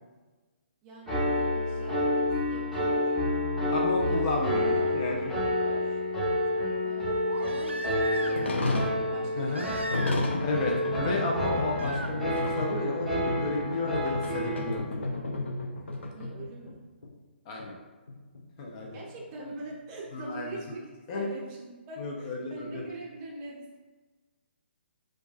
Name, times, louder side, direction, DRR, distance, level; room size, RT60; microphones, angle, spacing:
voice 1, 0.8-3.1 3.6-6.0 6.8-11.0 15.9-16.8 18.9-23.8, right 2 dB, 25° right, -3 dB, 0.6 m, -44 dB
Piano, 1.1-14.8, left 1 dB, ahead, 0.9 m, -29 dB
voice 2, 3.7-5.4 9.4-9.7 10.4-15.0 17.5-17.7 18.6-19.0 20.1-20.6 21.1-21.3 22.0-22.8, left 2 dB, 35° left, -1 dB, 0.6 m, -32 dB
Crying sobbing, 7.3-8.6 9.5-10.4 10.6-11.1 11.8-12.1 13.7-13.8, right 1 dB, 90° right, 0.4 m, -38 dB
sound 1, 8.4-16.8 17.0-17.1 17.6-17.7 18.1-19.7, left 2 dB, 80° left, 0.5 m, -33 dB
4.5 x 2.4 x 2.4 m, 1.3 s
figure-of-eight pair, 135°, 6 cm